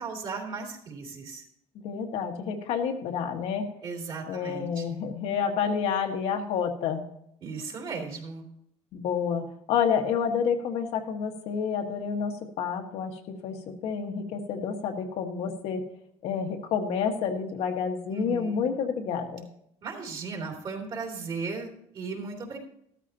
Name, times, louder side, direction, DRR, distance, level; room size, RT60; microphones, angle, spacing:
voice 1, 0.0-1.4 3.8-5.0 7.4-8.4 18.1-18.7 19.8-22.6, right 4 dB, 40° right, -1 dB, 3.2 m, -36 dB
voice 2, 1.8-3.7 4.3-7.1 8.9-15.8 16.2-19.5, left 7 dB, 65° left, 3 dB, 1.7 m, -29 dB
14.0 x 13.5 x 2.9 m, 0.72 s
cardioid pair, 155°, 12 cm